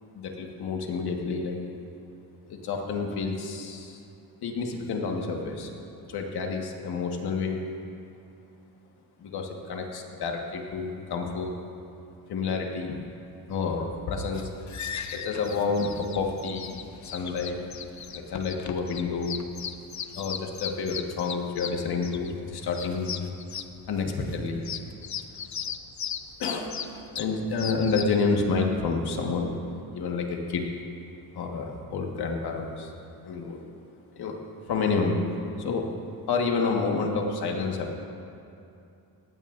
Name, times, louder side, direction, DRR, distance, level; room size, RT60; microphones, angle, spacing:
voice 1, 0.1-1.6 2.5-4.0 4.4-5.7 6.1-7.7 9.2-11.6 12.3-13.0 13.5-14.5 15.1-16.8 17.0-17.6 18.1-19.4 20.2-23.2 23.9-24.7 26.4-26.7 27.2-29.6 29.9-30.7 31.3-32.9 33.2-33.6 34.1-34.4 34.7-35.2 35.6-35.9 36.3-38.0, left 4 dB, 90° left, 1 dB, 1.6 m, -29 dB
sound 1, 14.3-28.2, left 8 dB, 50° left, 0.7 m, -38 dB
18.5 x 15.5 x 2.6 m, 2.7 s
cardioid pair, 95°, 37 cm